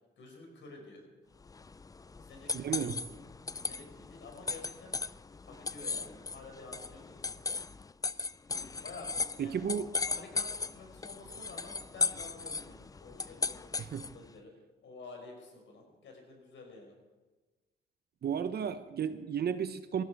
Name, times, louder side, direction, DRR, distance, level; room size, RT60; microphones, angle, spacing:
voice 1, 0.2-1.0 2.2-3.0 3.5-5.0 5.5-7.4 8.8-9.8 10.0-14.5 14.8-16.9, left 3 dB, 70° left, 2 dB, 5.4 m, -50 dB
sound 1, 1.4-14.3, left 4 dB, 20° left, 0.4 m, -37 dB
voice 2, 2.5-3.0 9.4-9.8 13.8-14.0 18.2-20.0, right 8 dB, 55° right, 11 dB, 0.9 m, -33 dB
20.0 x 15.0 x 4.8 m, 1.2 s
cardioid pair, 90°, 20 cm